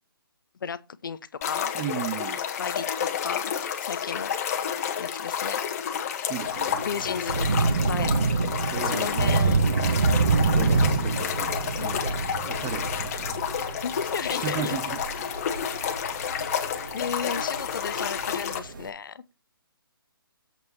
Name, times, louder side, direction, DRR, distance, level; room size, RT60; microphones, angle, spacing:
voice 1, 0.6-1.2 1.4-1.7 2.6-2.8 3.2-3.5 3.8-4.3 5.0-5.6 6.8-8.1 8.8-9.6 10.5-10.9 11.8-12.0 13.8-14.8 16.9-19.2, left 6 dB, 60° left, 0.9 m, -33 dB
sound 1, 1.4-18.6, left 8 dB, 40° left, 1.5 m, -30 dB
voice 2, 1.7-2.4 6.3-7.0 8.7-10.0 10.3-13.4 14.4-15.0, right 11 dB, 20° right, 0.6 m, -36 dB
Thunder / Rain, 6.5-18.9, right 4 dB, 60° right, 1.8 m, -27 dB
8.0 x 5.2 x 5.7 m
figure-of-eight pair, 145°, 12 cm